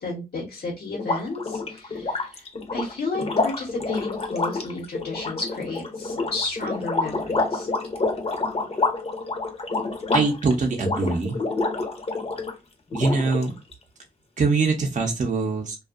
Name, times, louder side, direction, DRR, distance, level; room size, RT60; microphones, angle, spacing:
voice 1, 0.0-2.5 2.7-7.7, left 3 dB, 85° left, -2 dB, 1.0 m, -32 dB
sound 1, 0.9-12.5 12.9-13.7, left 3 dB, 40° left, 0.7 m, -28 dB
voice 2, 10.1-11.3 12.9-13.5 14.4-15.8, right 4 dB, 50° right, 2 dB, 0.6 m, -23 dB
2.5 x 2.3 x 2.4 m, 0.24 s
wide cardioid pair, 75°, 16 cm